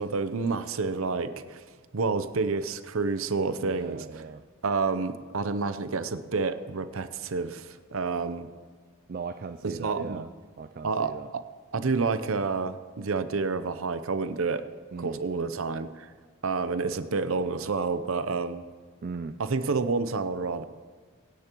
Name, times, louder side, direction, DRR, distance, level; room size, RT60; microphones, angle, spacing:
voice 1, 0.0-1.6 1.9-4.0 4.6-8.5 9.6-10.2 10.8-11.4 11.7-14.6 15.0-16.1 16.4-18.6 19.4-20.6, right 4 dB, 70° right, 11 dB, 0.7 m, -29 dB
voice 2, 3.6-4.4 9.1-10.3 10.6-11.3 14.9-15.2 19.0-19.4, right 4 dB, 40° right, 8 dB, 0.3 m, -38 dB
23.5 x 10.5 x 3.0 m, 1.5 s
head